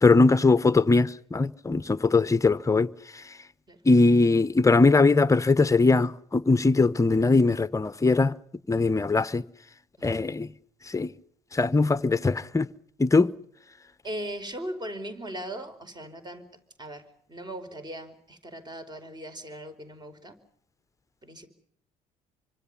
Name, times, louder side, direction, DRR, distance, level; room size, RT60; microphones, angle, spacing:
voice 1, 0.0-3.2 3.8-8.3 8.7-9.4 10.0-10.5 10.9-11.1 11.5-12.7 13.0-13.3, left 3 dB, 15° left, 0.9 m, -21 dB
voice 2, 14.0-16.5 16.8-20.4 21.2-21.5, right 1 dB, 25° right, 5.1 m, -39 dB
27.0 x 25.5 x 5.5 m
hypercardioid pair, 55°, 18 cm